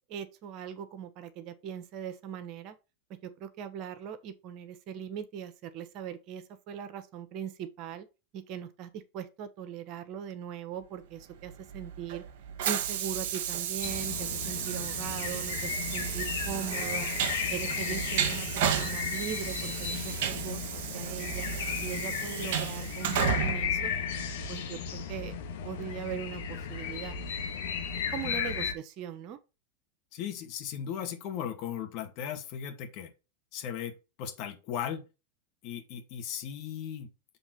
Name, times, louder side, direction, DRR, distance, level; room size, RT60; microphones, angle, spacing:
voice 1, 0.1-2.7 3.2-8.1 8.3-12.2 12.6-17.1 17.5-21.5 21.8-23.9 24.5-25.3 25.6-27.2 28.0-29.4, right 8 dB, 50° right, 1.2 m, -40 dB
Train, 11.5-24.6, right 9 dB, 65° right, 1.3 m, -33 dB
sound 1, 13.8-28.7, left 7 dB, 75° left, 1.6 m, -35 dB
voice 2, 30.1-33.1 33.5-35.1 35.6-37.1, left 9 dB, 55° left, 2.0 m, -37 dB
7.0 x 3.7 x 6.0 m
hypercardioid pair, 105°, 0 cm